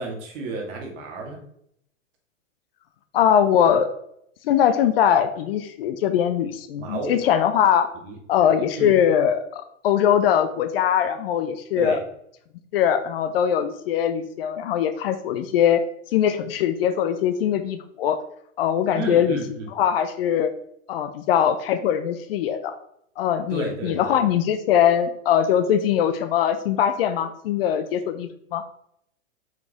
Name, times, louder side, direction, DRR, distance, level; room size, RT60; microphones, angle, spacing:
voice 1, 0.0-1.4 6.8-7.2 8.0-8.5 8.8-8.9 11.8-12.0 18.9-19.7 23.5-24.2, right 2 dB, 45° right, 1 dB, 2.0 m, -32 dB
voice 2, 3.1-3.9 4.4-7.9 8.3-12.0 12.7-15.8 16.1-18.2 18.6-19.4 19.8-20.5 20.9-22.7 23.2-28.6, left 9 dB, 50° left, 10 dB, 0.6 m, -21 dB
5.8 x 4.8 x 3.5 m, 0.72 s
hypercardioid pair, 120°, 39 cm